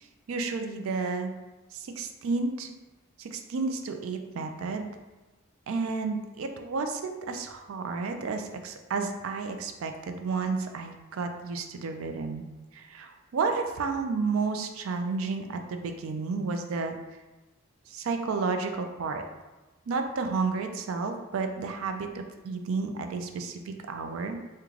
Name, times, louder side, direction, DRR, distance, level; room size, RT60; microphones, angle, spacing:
voice 1, 0.3-1.3 1.7-2.7 3.2-4.9 5.7-12.5 12.7-17.0 17.9-19.2 19.9-24.4, right 4 dB, 80° right, 6 dB, 0.4 m, -31 dB
3.7 x 2.2 x 3.1 m, 1.1 s
head